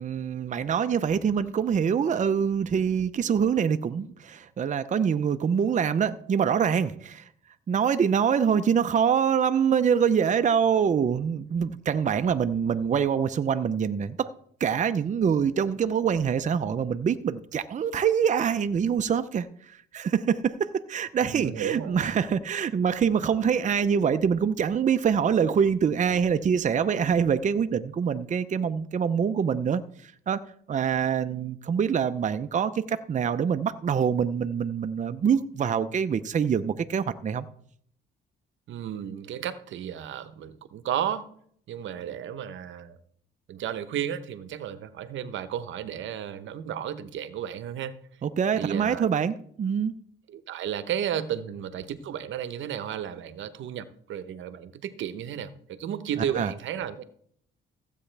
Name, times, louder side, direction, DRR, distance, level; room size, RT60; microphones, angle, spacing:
voice 1, 0.0-7.3 7.7-14.3 14.6-30.4 30.7-37.5 48.2-49.9 56.3-56.5, right 7 dB, 40° right, 11 dB, 0.6 m, -25 dB
voice 2, 21.2-22.0 38.7-41.3 41.7-43.0 43.5-48.0 48.6-49.1 50.3-57.0, right 9 dB, 75° right, 13 dB, 0.9 m, -33 dB
15.5 x 8.2 x 3.4 m, 0.63 s
cardioid pair, 90°, 20 cm